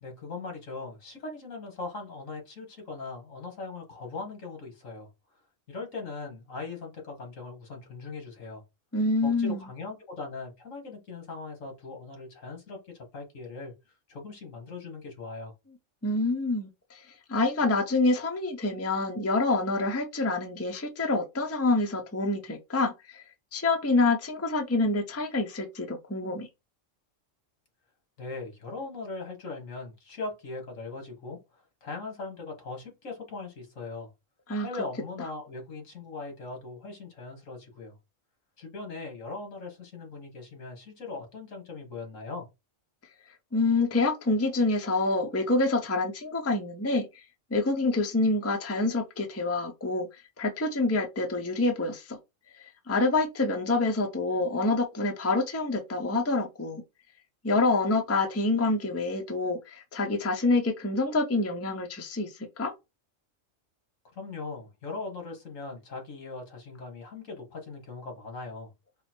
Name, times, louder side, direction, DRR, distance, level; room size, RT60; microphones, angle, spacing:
voice 1, 0.0-5.1 5.7-8.6 9.2-13.7 14.1-15.5 28.2-34.1 34.6-38.0 38.6-42.5 64.0-68.7, left 3 dB, 80° left, 1.9 m, -40 dB
voice 2, 8.9-9.6 16.0-23.2 23.5-26.5 34.5-34.7 43.5-47.2 47.5-52.2 52.6-56.8 57.4-62.7, left 2 dB, 15° left, 0.5 m, -27 dB
4.8 x 2.1 x 4.4 m
omnidirectional pair, 1.3 m